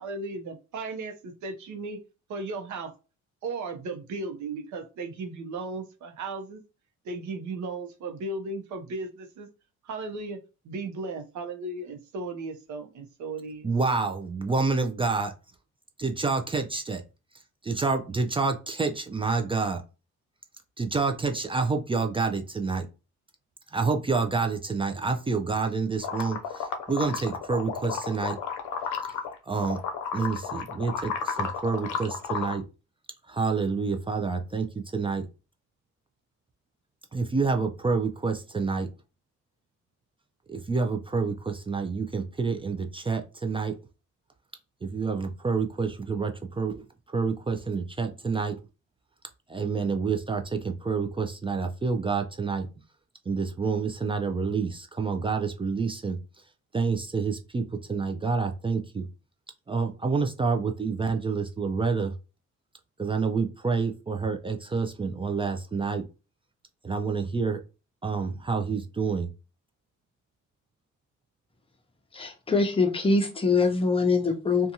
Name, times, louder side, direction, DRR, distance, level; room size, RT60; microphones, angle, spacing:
voice 1, 0.0-2.0 2.3-2.9 3.4-6.6 7.0-9.5 9.8-10.4 10.6-13.7, right 3 dB, 70° right, 7 dB, 0.7 m, -36 dB
voice 2, 13.6-15.3 16.0-17.0 17.6-19.8 20.8-22.9 23.7-28.4 29.4-29.8 30.1-32.7 33.3-35.3 37.1-38.9 40.5-43.8 44.8-46.8 47.1-48.6 49.5-52.7 53.3-56.2 56.7-59.0 59.7-62.1 63.0-66.0 66.8-67.6 68.0-69.3, right 4 dB, 20° right, 5 dB, 0.3 m, -28 dB
sound 1, 26.0-29.3 29.6-32.5, left 6 dB, 85° left, 0.5 m, -32 dB
voice 3, 72.1-74.7, left 3 dB, 20° left, 5 dB, 0.7 m, -23 dB
2.5 x 2.3 x 2.8 m, 0.31 s
cardioid pair, 90°, 30 cm